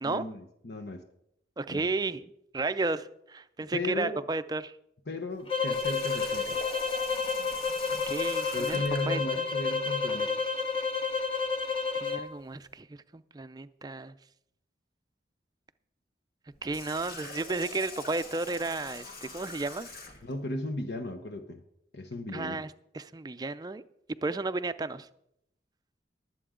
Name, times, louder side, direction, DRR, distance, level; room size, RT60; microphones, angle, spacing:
voice 1, 0.0-1.0 1.7-1.9 3.7-4.2 5.1-6.6 8.5-10.5 20.2-21.6 21.9-22.6, left 2 dB, 70° left, 6 dB, 0.9 m, -36 dB
voice 2, 1.6-4.8 8.1-9.5 11.9-12.9 13.1-14.1 16.6-19.9 22.3-23.8 24.2-25.1, right 3 dB, 20° right, 12 dB, 0.4 m, -33 dB
sound 1, 5.5-12.3, left 4 dB, 30° left, 1.0 m, -30 dB
Water tap faucet, 5.7-9.1 16.5-20.3, left 3 dB, 55° left, 2.1 m, -44 dB
20.5 x 7.8 x 3.7 m, 0.78 s
head